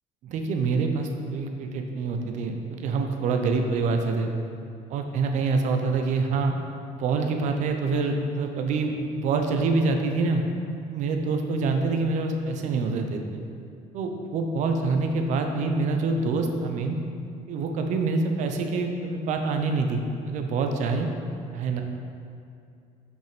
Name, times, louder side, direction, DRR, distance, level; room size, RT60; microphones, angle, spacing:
voice 1, 0.2-4.3 4.9-6.5 6.9-10.4 10.9-13.4 13.9-17.0 17.5-21.1 21.5-21.8, right 4 dB, 60° right, 4 dB, 0.8 m, -26 dB
6.2 x 5.4 x 5.1 m, 2.5 s
cardioid pair, 120°, 14 cm